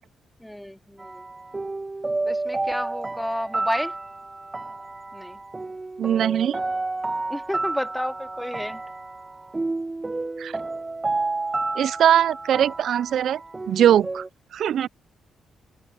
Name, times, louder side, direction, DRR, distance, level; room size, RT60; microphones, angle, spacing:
voice 1, 0.4-1.3 2.2-3.9 5.1-5.4 7.3-8.8, equal, 5° left, 3.0 m, -31 dB
sound 1, 1.0-14.3, right 2 dB, 20° right, 0.7 m, -31 dB
voice 2, 6.0-6.6 10.4-10.6 11.8-13.4 13.7-14.2 14.5-14.9, right 10 dB, 70° right, 0.3 m, -21 dB
cardioid pair, 85°, 0 cm